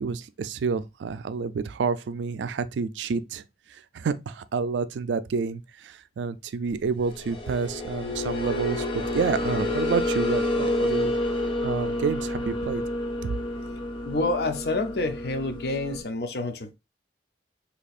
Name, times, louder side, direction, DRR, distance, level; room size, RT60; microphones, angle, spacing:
voice 1, 0.0-3.4 3.9-11.1 11.6-12.8 13.2-13.3, right 5 dB, 85° right, 0.3 m, -29 dB
sound 1, 7.0-16.0, left 1 dB, 30° left, 0.7 m, -29 dB
voice 2, 14.0-16.7, left 2 dB, 60° left, 0.5 m, -28 dB
4.1 x 2.8 x 2.4 m
head